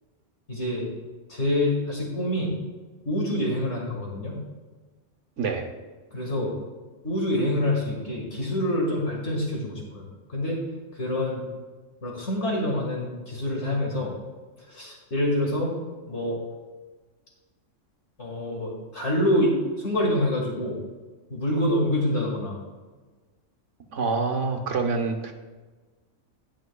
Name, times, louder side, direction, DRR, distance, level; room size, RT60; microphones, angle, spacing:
voice 1, 0.5-0.9 1.3-2.5 3.1-4.4 6.1-6.5 7.0-10.0 10.3-10.6 10.9-11.4 12.0-14.1 14.7-15.7 16.1-16.4 18.2-20.8 21.3-22.6, left 1 dB, 60° left, -2 dB, 2.1 m, -26 dB
voice 2, 5.4-5.7 23.9-25.3, right 4 dB, 75° right, 4 dB, 1.4 m, -26 dB
18.5 x 6.3 x 2.3 m, 1.3 s
omnidirectional pair, 1.3 m